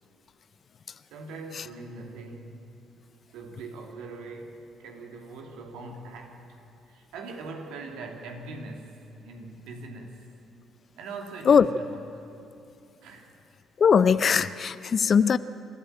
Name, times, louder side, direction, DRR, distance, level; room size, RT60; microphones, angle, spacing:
voice 1, 1.1-2.6 3.3-6.6 6.9-10.2 11.0-12.3 13.0-13.3, right 3 dB, 70° right, 3 dB, 2.6 m, -41 dB
voice 2, 13.8-15.4, left 6 dB, 50° left, 16 dB, 0.5 m, -20 dB
27.5 x 13.5 x 8.9 m, 2.8 s
hypercardioid pair, 50°, 0 cm